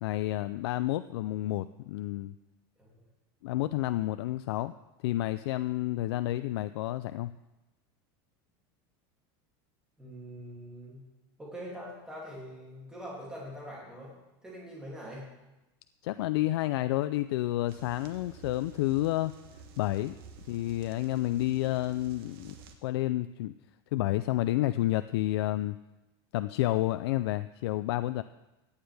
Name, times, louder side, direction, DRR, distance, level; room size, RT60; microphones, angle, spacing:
voice 1, 0.0-2.3 3.4-4.7 5.0-7.3 16.0-19.3 19.8-20.2 20.5-22.5 22.8-23.5 23.9-25.8 26.3-28.2, left 15 dB, 80° left, 12 dB, 0.4 m, -30 dB
voice 2, 10.0-11.0 11.4-14.1 14.4-15.3, equal, 5° right, -5 dB, 2.6 m, -43 dB
sound 1, 17.7-22.8, right 4 dB, 70° right, 1.4 m, -51 dB
17.0 x 9.7 x 3.4 m, 1.0 s
supercardioid pair, 175°, 13 cm